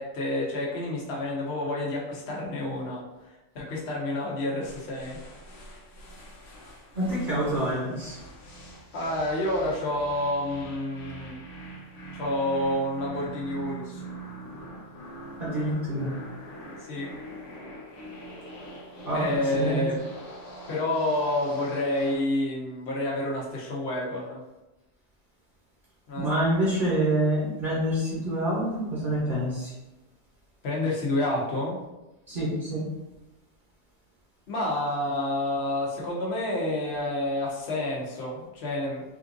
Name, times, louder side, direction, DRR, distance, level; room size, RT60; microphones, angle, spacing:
voice 1, 0.0-3.0 3.5-5.2 8.9-11.3 12.1-14.0 16.8-17.1 19.1-20.0 20.7-24.4 26.1-26.3 30.6-31.8 34.5-39.0, left 1 dB, 60° left, -4 dB, 1.1 m, -29 dB
sound 1, 4.6-22.3, right 2 dB, 90° left, 1.1 m, -43 dB
voice 2, 6.9-8.2 15.4-16.1 19.0-19.8 26.2-29.7 32.3-32.8, right 1 dB, 45° right, -7 dB, 1.0 m, -27 dB
3.7 x 2.5 x 2.5 m, 1.0 s
omnidirectional pair, 1.2 m